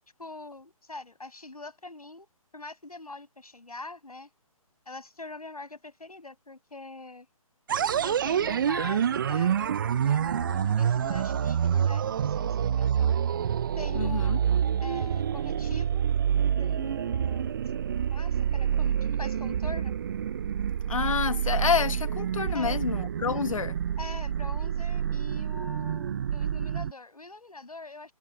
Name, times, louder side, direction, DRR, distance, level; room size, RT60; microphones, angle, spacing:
voice 1, 0.2-2.3 2.5-4.3 4.9-7.3 8.0-13.2 13.8-14.4 14.8-16.1 16.6-17.6 18.1-19.9 22.5-22.9 24.0-28.1, left 2 dB, 90° left, 6.6 m, -43 dB
sound 1, 7.7-26.9, right 8 dB, 35° right, 0.4 m, -27 dB
voice 2, 13.9-14.4 20.9-23.8, left 6 dB, 65° left, 1.3 m, -28 dB
figure-of-eight pair, 150°, 19 cm